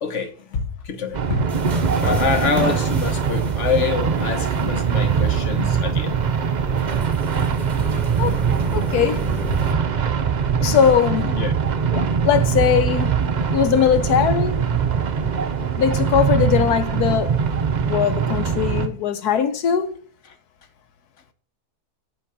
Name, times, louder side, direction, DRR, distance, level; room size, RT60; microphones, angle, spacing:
voice 1, 0.0-1.5 2.0-6.2 10.6-10.8 11.4-11.5 16.4-16.7, left 5 dB, 55° left, 1.3 m, -26 dB
sound 1, 1.1-18.9, right 6 dB, 50° right, 0.5 m, -22 dB
sound 2, 1.5-9.7, right 2 dB, 30° right, 1.1 m, -31 dB
voice 2, 8.7-9.3 10.6-11.3 11.9-13.1 13.5-14.7 15.7-17.4 17.8-20.0, left 8 dB, 80° left, 1.4 m, -20 dB
8.4 x 5.7 x 4.9 m
omnidirectional pair, 1.6 m